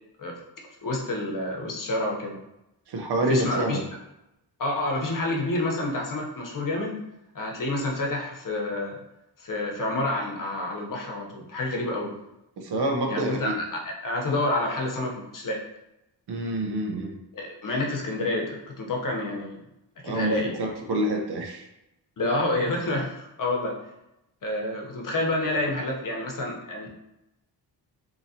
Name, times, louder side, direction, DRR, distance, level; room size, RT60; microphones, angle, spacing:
voice 1, 0.8-2.4 3.1-3.8 4.6-7.0 7.3-9.0 9.4-12.1 13.1-15.6 17.3-19.6 20.0-20.6 22.2-23.8 24.4-26.9, left 2 dB, 50° left, 0 dB, 0.9 m, -28 dB
voice 2, 2.9-3.8 12.6-13.6 16.3-17.2 20.0-21.7, right 1 dB, 65° right, 2 dB, 0.8 m, -27 dB
3.8 x 2.9 x 2.8 m, 0.89 s
cardioid pair, 95°, 42 cm